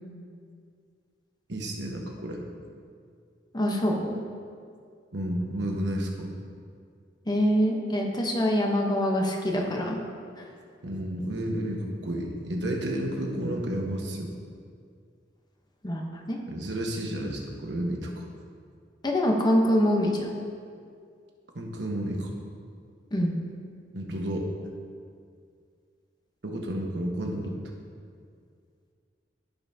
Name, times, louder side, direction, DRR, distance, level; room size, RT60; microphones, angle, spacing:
voice 1, 1.5-2.4 5.1-6.3 10.8-14.3 16.5-18.3 21.5-22.3 23.9-24.5 26.4-27.6, right 1 dB, 70° right, 1 dB, 1.2 m, -31 dB
voice 2, 3.5-4.2 7.3-10.0 10.4-10.5 15.8-16.0 16.3-16.4 19.0-20.3 23.1-23.4, equal, 25° left, 0 dB, 0.9 m, -24 dB
15.5 x 5.5 x 2.8 m, 2.2 s
head